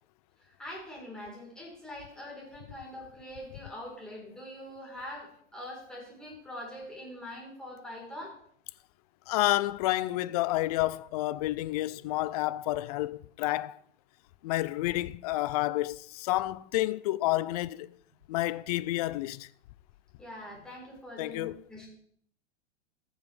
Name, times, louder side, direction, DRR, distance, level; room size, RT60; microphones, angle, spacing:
voice 1, 0.6-8.3 20.2-21.9, left 1 dB, ahead, 3.9 m, -43 dB
voice 2, 9.3-13.8 14.4-17.9 18.3-19.5 21.2-21.6, left 17 dB, 35° left, 0.4 m, -30 dB
15.0 x 7.2 x 3.3 m
hypercardioid pair, 115°, 36 cm